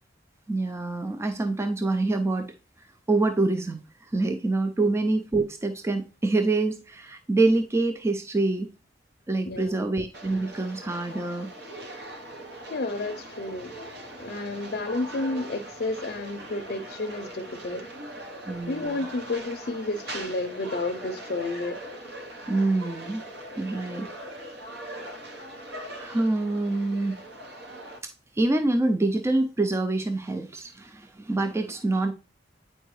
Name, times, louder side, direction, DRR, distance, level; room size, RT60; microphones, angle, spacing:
voice 1, 0.5-8.7 9.3-11.5 18.5-19.0 22.5-23.2 23.6-24.1 25.9-27.2 28.0-32.1, right 2 dB, 15° right, 0.3 m, -26 dB
voice 2, 9.5-9.9 12.7-13.8 14.2-17.9 18.7-21.8, left 2 dB, 55° left, 0.5 m, -31 dB
sound 1, 10.1-28.0, right 1 dB, 65° right, 1.0 m, -41 dB
9.0 x 4.4 x 3.1 m
head